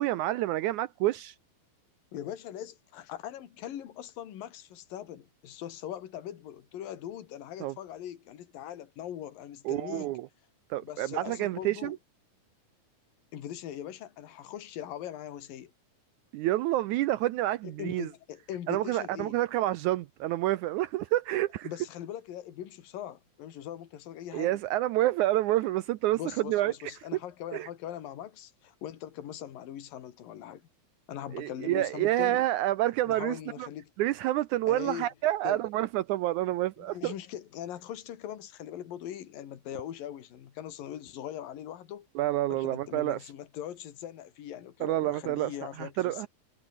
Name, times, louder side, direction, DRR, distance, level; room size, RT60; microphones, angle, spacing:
voice 1, 0.0-1.4 7.6-7.7 9.7-10.3 10.7-12.0 16.3-18.1 18.7-21.7 24.3-26.7 27.5-27.7 31.3-33.7 34.0-37.1 42.2-43.2 44.8-45.5 45.8-46.3, right 15 dB, 85° right, 1.7 m, -28 dB
voice 2, 2.1-10.1 10.8-11.9 13.3-15.7 17.6-19.3 21.6-24.6 26.2-30.7 31.1-32.4 33.1-33.9 34.7-35.1 35.4-35.6 36.9-42.1 42.5-46.3, left 11 dB, 70° left, 3.7 m, -41 dB
omnidirectional pair, 4.2 m